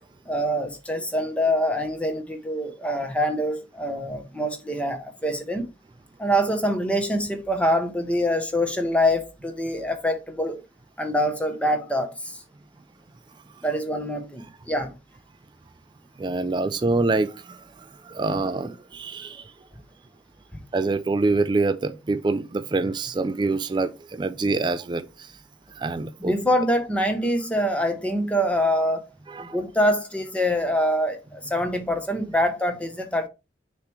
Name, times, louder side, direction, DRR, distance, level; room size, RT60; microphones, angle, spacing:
voice 1, 0.3-5.7 6.2-10.6 11.0-12.4 13.6-14.9 26.2-29.1 29.4-33.3, equal, 5° left, 0.8 m, -25 dB
voice 2, 16.2-19.5 20.7-25.3 25.8-26.3 29.3-29.6, right 3 dB, 25° right, 0.3 m, -26 dB
6.6 x 3.0 x 4.6 m
head